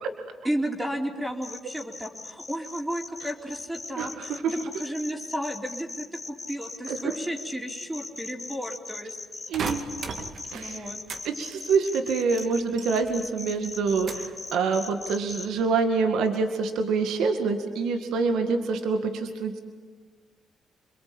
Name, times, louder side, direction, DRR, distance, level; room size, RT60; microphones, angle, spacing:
voice 1, 0.4-9.1 10.5-11.0, right 1 dB, 10° right, 2 dB, 3.7 m, -33 dB
sound 1, 1.4-15.4, left 3 dB, 25° left, 2.5 m, -39 dB
voice 2, 4.0-4.5 6.9-7.1 9.5-9.8 10.5-10.9 11.2-19.6, right 4 dB, 85° right, 6 dB, 2.1 m, -26 dB
sound 2, 9.5-11.3 11.5-13.3 13.6-14.4 14.8-15.3, right 5 dB, 60° right, 2.2 m, -37 dB
28.0 x 22.0 x 8.7 m, 1.4 s
cardioid pair, 90°, 0 cm